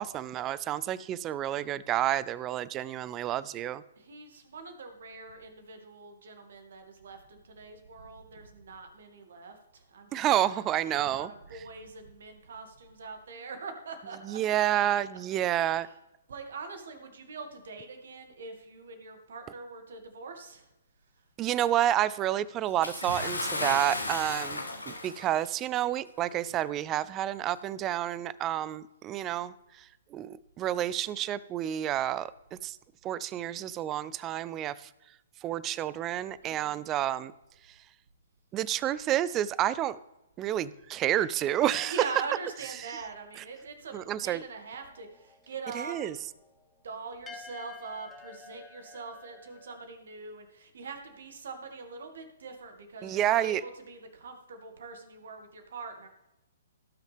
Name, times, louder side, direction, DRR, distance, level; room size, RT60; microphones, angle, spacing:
voice 1, 0.0-3.8 10.1-11.3 14.3-15.9 21.4-29.8 30.1-32.3 32.6-32.8 33.0-34.9 35.4-37.3 38.5-40.0 40.4-41.9 43.9-44.4 45.7-46.1 53.0-53.6, right 12 dB, 25° right, 19 dB, 0.4 m, -29 dB
voice 2, 4.0-14.4 14.7-14.8 15.7-16.0 16.3-20.7 36.4-36.8 41.8-46.2 46.8-56.1, right 4 dB, 65° right, 5 dB, 2.1 m, -43 dB
Bathtub (filling or washing) / Splash splatter, 22.8-25.4 26.3-26.4 27.4-27.5, left 2 dB, 90° left, 1.6 m, -34 dB
sound 1, 44.7-49.8, left 4 dB, 15° left, 1.0 m, -51 dB
17.5 x 6.3 x 3.5 m, 0.95 s
figure-of-eight pair, 125°, 0 cm